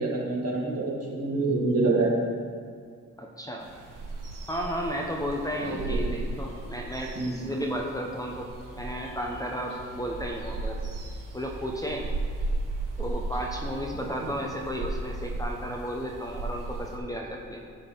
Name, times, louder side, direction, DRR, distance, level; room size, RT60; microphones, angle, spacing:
voice 1, 0.0-2.1 5.6-6.1 7.1-7.5 14.0-14.3, right 3 dB, 50° right, -3 dB, 1.8 m, -27 dB
voice 2, 3.2-3.7 4.5-10.8 11.3-12.1 13.0-17.6, equal, 10° left, 0 dB, 0.8 m, -33 dB
sound 1, 3.6-17.0, right 2 dB, 85° right, 1.2 m, -35 dB
10.0 x 3.8 x 6.8 m, 2.1 s
wide cardioid pair, 100°, 31 cm